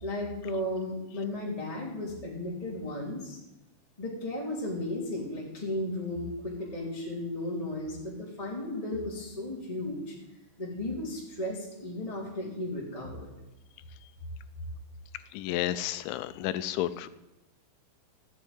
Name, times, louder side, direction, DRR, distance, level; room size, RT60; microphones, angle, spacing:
voice 1, 0.0-3.4 4.0-10.2 10.6-13.3, left 1 dB, 10° left, -4 dB, 2.3 m, -35 dB
voice 2, 15.3-17.1, left 13 dB, 85° left, 14 dB, 3.0 m, -31 dB
16.0 x 7.3 x 9.3 m, 0.93 s
omnidirectional pair, 5.4 m